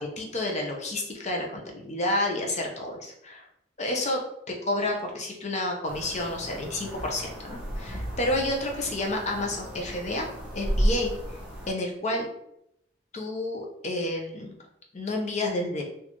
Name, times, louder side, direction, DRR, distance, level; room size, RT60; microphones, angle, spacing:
voice 1, 0.2-3.5 3.8-4.2 4.5-10.3 10.5-11.4 11.7-12.3 13.1-14.5 14.9-15.8, left 1 dB, 40° left, 1 dB, 0.7 m, -30 dB
sound 1, 5.9-11.7, equal, 5° right, 1.1 m, -33 dB
4.2 x 2.6 x 3.0 m, 0.76 s
head